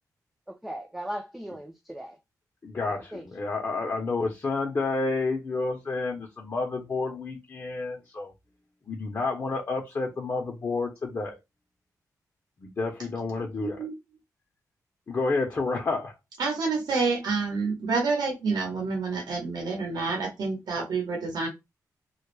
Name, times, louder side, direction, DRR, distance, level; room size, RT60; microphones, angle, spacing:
voice 1, 0.5-2.2 2.9-3.2, equal, 5° right, 0.3 m, -38 dB
voice 2, 2.6-8.3 8.9-11.4 12.6-13.8 15.1-16.1, left 3 dB, 40° left, 0.6 m, -30 dB
voice 3, 13.6-13.9 16.4-21.5, right 4 dB, 80° right, 0.8 m, -28 dB
2.2 x 2.0 x 3.0 m
cardioid pair, 90°, 7 cm